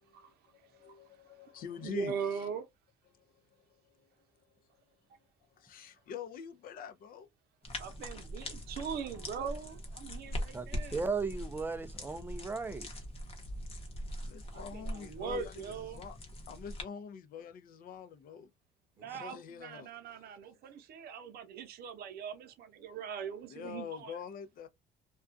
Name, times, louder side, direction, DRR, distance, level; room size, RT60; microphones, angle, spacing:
voice 1, 0.0-2.5 3.1-4.1 5.6-7.3 14.2-16.2 16.5-18.5 19.1-20.4 23.5-24.7, left 7 dB, 55° left, 0.5 m, -46 dB
voice 2, 1.8-2.7 7.8-11.0 14.2-14.3 14.5-16.0 19.0-24.1, right 6 dB, 70° right, 0.7 m, -41 dB
sound 1, 7.6-16.8, equal, 35° left, 0.8 m, -42 dB
voice 3, 10.5-12.9 19.0-19.1, right 4 dB, 10° right, 0.4 m, -36 dB
2.4 x 2.2 x 2.5 m
cardioid pair, 110°, 17 cm